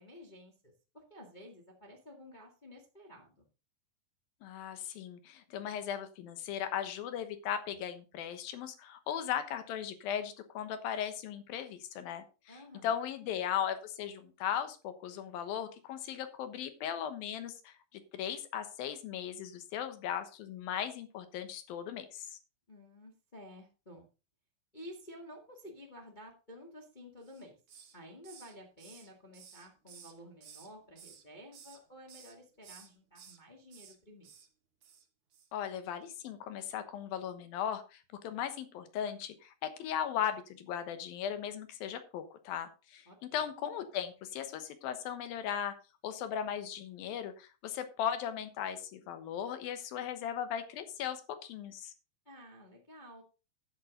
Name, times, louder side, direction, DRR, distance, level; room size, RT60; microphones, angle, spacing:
voice 1, 0.0-3.4 12.5-13.0 22.7-24.0 24.7-27.5 27.9-34.3 43.0-43.4 52.2-53.2, equal, 25° left, 1 dB, 0.9 m, -52 dB
voice 2, 4.4-22.3 35.5-39.5 39.8-45.7 46.0-51.9, left 9 dB, 75° left, 9 dB, 2.9 m, -37 dB
Hiss, 27.2-28.0 28.2-30.7 31.0-31.8 32.1-32.3 32.6-33.4 33.7-34.0 34.2-34.5 34.8-35.0 35.3-35.5, right 7 dB, 55° right, 1.6 m, -55 dB
10.5 x 8.7 x 3.8 m, 0.32 s
omnidirectional pair, 4.3 m